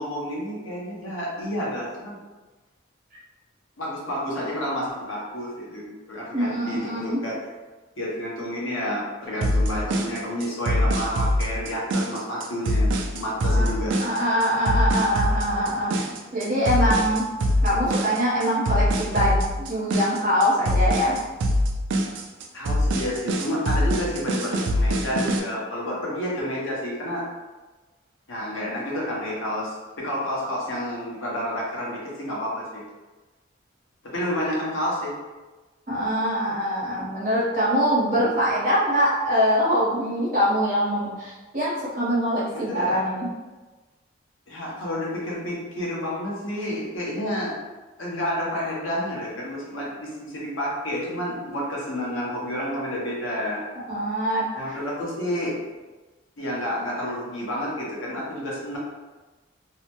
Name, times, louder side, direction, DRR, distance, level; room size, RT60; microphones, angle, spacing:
voice 1, 0.0-2.2 3.8-7.4 8.0-12.9 13.1-14.0 22.5-27.3 28.3-32.8 34.0-35.2 42.5-43.0 44.5-47.5 48.0-53.6 54.5-55.6 56.4-58.8, equal, 85° left, -4 dB, 0.9 m, -30 dB
voice 2, 6.3-7.2 13.5-13.7 14.0-17.2 17.6-21.2 35.9-43.3 53.9-54.8, equal, 45° right, -8 dB, 1.0 m, -23 dB
sound 1, 9.4-25.4, equal, 65° right, 0.3 m, -24 dB
2.7 x 2.1 x 2.9 m, 1.2 s
head